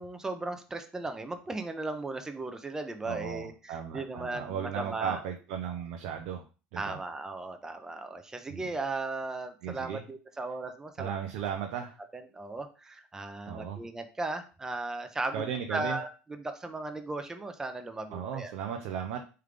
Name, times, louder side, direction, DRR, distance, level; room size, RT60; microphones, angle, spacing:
voice 1, 0.0-5.2 6.7-11.1 12.1-15.4 15.7-18.5, right 2 dB, 15° right, 7 dB, 0.6 m, -36 dB
voice 2, 3.1-6.4 6.7-7.0 8.5-8.7 9.6-10.0 11.0-12.0 13.5-13.8 15.3-16.0 18.1-19.2, right 8 dB, 75° right, 4 dB, 0.6 m, -36 dB
3.6 x 3.3 x 3.3 m, 0.34 s
supercardioid pair, 100°, 4 cm